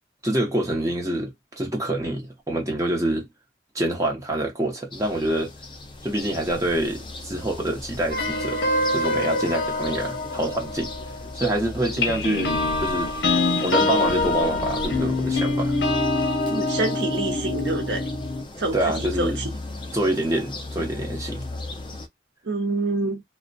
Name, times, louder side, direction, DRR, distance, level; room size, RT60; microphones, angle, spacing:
voice 1, 0.2-3.3 3.7-5.5 6.0-10.9 11.3-13.1 13.6-15.7 18.7-19.5 19.9-21.5, right 1 dB, 15° right, 0.6 m, -26 dB
sound 1, 4.9-22.1, left 2 dB, 25° left, 0.3 m, -37 dB
sound 2, 8.1-11.5 12.0-18.4, left 2 dB, 60° left, 0.7 m, -25 dB
voice 2, 16.5-18.1 18.6-19.5 22.5-23.2, right 2 dB, 70° right, 0.8 m, -27 dB
2.6 x 2.1 x 2.5 m
head